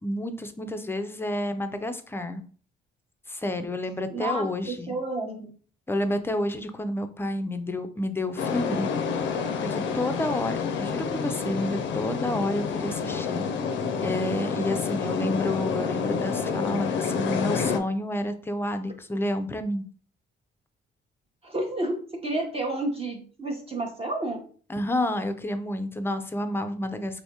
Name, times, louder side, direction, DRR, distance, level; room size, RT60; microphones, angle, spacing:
voice 1, 0.0-2.4 3.3-4.9 5.9-8.9 9.6-13.4 14.0-19.8 24.7-27.2, left 1 dB, 10° left, 8 dB, 0.4 m, -30 dB
voice 2, 4.1-5.5 21.4-24.4, right 2 dB, 30° right, 0 dB, 0.7 m, -30 dB
sound 1, 8.4-17.8, left 5 dB, 70° left, 0.5 m, -28 dB
3.4 x 2.6 x 2.8 m, 0.43 s
cardioid pair, 90°, 20 cm